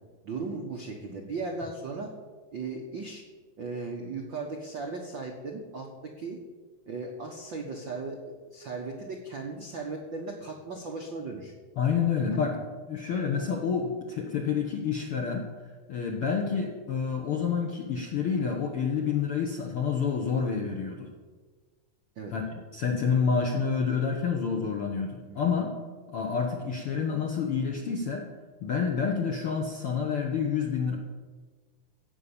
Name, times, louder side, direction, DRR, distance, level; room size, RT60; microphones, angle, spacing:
voice 1, 0.2-2.1 2.5-3.2 3.6-6.4 6.9-8.2 8.5-11.5 12.3-12.5 22.2-22.3 25.3-25.5, right 3 dB, 70° right, 1 dB, 1.1 m, -37 dB
voice 2, 11.8-12.6 12.9-15.4 15.9-21.1 22.3-22.4 22.7-25.7 26.1-28.3 28.6-31.0, left 6 dB, 70° left, 1 dB, 1.3 m, -28 dB
16.0 x 5.4 x 8.6 m, 1.4 s
omnidirectional pair, 4.0 m